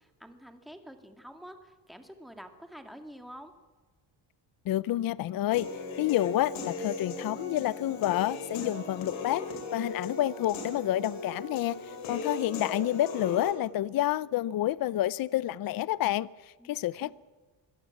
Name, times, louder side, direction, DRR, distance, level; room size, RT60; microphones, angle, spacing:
voice 1, 0.0-3.5 16.6-17.1, equal, ahead, 6 dB, 2.2 m, -48 dB
voice 2, 4.7-5.7 6.0-9.4 9.7-17.1, left 14 dB, 50° left, 20 dB, 0.6 m, -29 dB
Human voice / Piano, 5.5-13.5, left 3 dB, 85° left, 4.7 m, -38 dB
24.5 x 17.5 x 7.3 m, 1.3 s
cardioid pair, 130°, 45 cm